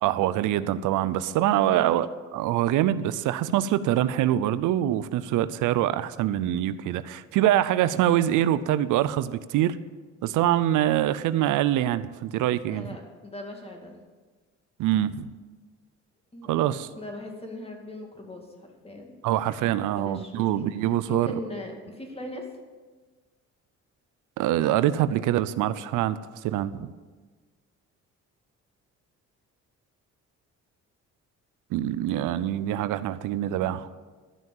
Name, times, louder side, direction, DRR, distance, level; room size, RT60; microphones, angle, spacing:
voice 1, 0.0-9.8 10.2-12.9 14.8-15.3 16.5-16.9 19.2-21.3 24.4-26.9 31.7-33.9, right 12 dB, 90° right, 14 dB, 0.5 m, -24 dB
voice 2, 1.3-2.1 12.7-14.0 16.3-19.2 19.5-22.5, left 1 dB, 20° left, 2 dB, 2.4 m, -40 dB
13.0 x 6.0 x 7.2 m, 1.4 s
cardioid pair, 90°, 30 cm